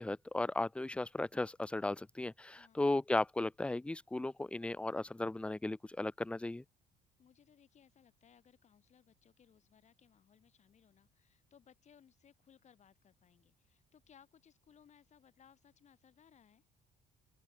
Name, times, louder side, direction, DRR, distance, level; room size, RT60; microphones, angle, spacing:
voice 1, 0.0-6.6, left 2 dB, 5° left, 0.5 m, -36 dB
voice 2, 2.5-3.0 7.2-16.6, left 8 dB, 45° left, 2.4 m, -65 dB
open air
cardioid pair, 110°, 17 cm